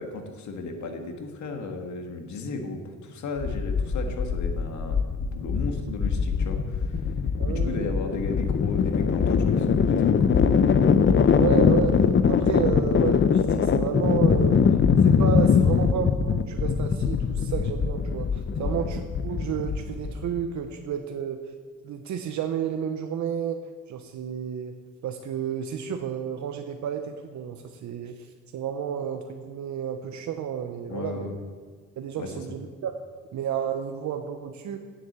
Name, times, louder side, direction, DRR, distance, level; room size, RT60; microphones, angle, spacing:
voice 1, 0.0-7.0 7.5-10.4 18.6-18.8 30.9-31.4 32.2-32.4, left 3 dB, 70° left, 4 dB, 1.9 m, -35 dB
sound 1, 3.4-20.4, left 6 dB, 40° left, 0.7 m, -22 dB
voice 2, 7.4-7.9 11.0-14.7 15.0-21.4 21.8-24.8 25.0-31.4 32.0-32.9 33.3-34.8, right 8 dB, 70° right, 6 dB, 0.9 m, -31 dB
9.8 x 7.8 x 8.1 m, 1.5 s
cardioid pair, 90°, 30 cm